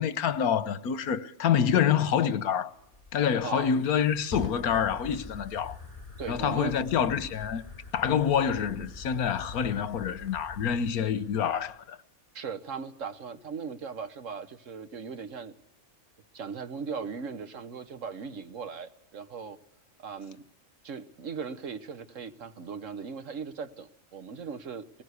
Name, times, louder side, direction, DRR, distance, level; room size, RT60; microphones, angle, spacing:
voice 1, 0.0-2.7 3.1-5.8 6.3-7.6 7.9-12.0, left 8 dB, 85° left, 1.4 m, -27 dB
Fire, 2.7-11.7, left 4 dB, 25° left, 2.8 m, -45 dB
voice 2, 6.2-6.8 12.3-15.5 16.3-19.6 20.0-20.4 20.8-25.0, right 5 dB, 60° right, 1.4 m, -38 dB
20.5 x 17.0 x 8.2 m
omnidirectional pair, 1.5 m